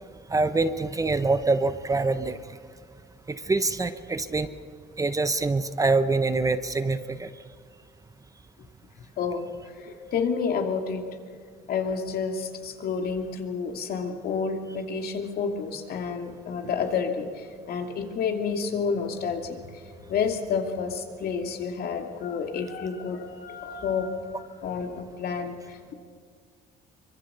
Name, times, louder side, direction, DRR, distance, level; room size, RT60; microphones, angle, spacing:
voice 1, 0.3-2.4 3.3-4.5 5.0-7.3, right 3 dB, 20° right, 11 dB, 0.9 m, -25 dB
voice 2, 9.2-9.5 10.1-11.0 11.7-17.3 17.7-19.6 20.1-25.6, left 5 dB, 65° left, 4 dB, 2.6 m, -29 dB
24.5 x 22.5 x 6.8 m, 2.1 s
cardioid pair, 110°, 17 cm